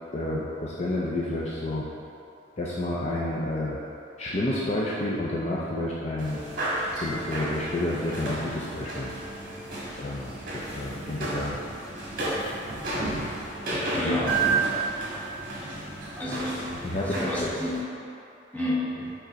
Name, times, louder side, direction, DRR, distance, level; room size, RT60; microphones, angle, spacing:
voice 1, 0.1-1.8 2.6-3.8 4.2-6.4 7.0-9.1 10.0-11.6 12.9-13.2 13.7-14.1 16.7-17.6, left 1 dB, 35° left, -5 dB, 0.5 m, -30 dB
sound 1, 6.2-17.8, right 3 dB, 50° right, 1.5 m, -32 dB
voice 2, 13.7-14.4 16.2-17.8 18.5-19.1, left 1 dB, 10° left, -7 dB, 1.0 m, -31 dB
5.4 x 3.7 x 5.1 m, 2.7 s
head